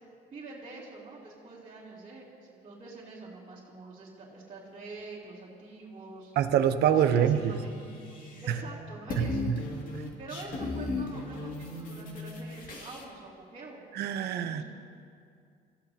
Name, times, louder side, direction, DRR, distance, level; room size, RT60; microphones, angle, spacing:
voice 1, 0.3-6.3 7.0-9.4 10.2-13.8 14.4-14.6, right 3 dB, 30° right, -9 dB, 3.3 m, -46 dB
voice 2, 6.4-7.6 8.5-8.6 9.2-9.6 13.9-14.6, right 9 dB, 75° right, 7 dB, 0.9 m, -25 dB
sound 1, 7.0-8.7 8.9-13.0, left 3 dB, 55° left, 2.5 m, -37 dB
26.5 x 14.5 x 2.9 m, 2.3 s
cardioid pair, 110°, 17 cm